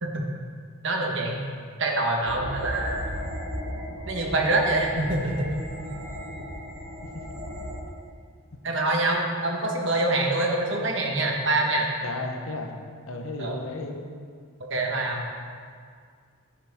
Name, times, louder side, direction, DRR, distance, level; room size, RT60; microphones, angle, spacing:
voice 1, 0.8-1.4 1.8-3.0 4.1-5.5 8.6-11.9 13.4-13.6 14.7-15.3, right 2 dB, 60° right, 0 dB, 1.5 m, -25 dB
sound 1, 2.3-7.8, equal, 85° right, 1.8 m, -36 dB
voice 2, 12.0-12.7 13.1-14.0, left 2 dB, 80° left, 3 dB, 1.1 m, -34 dB
10.5 x 9.9 x 3.7 m, 2.1 s
head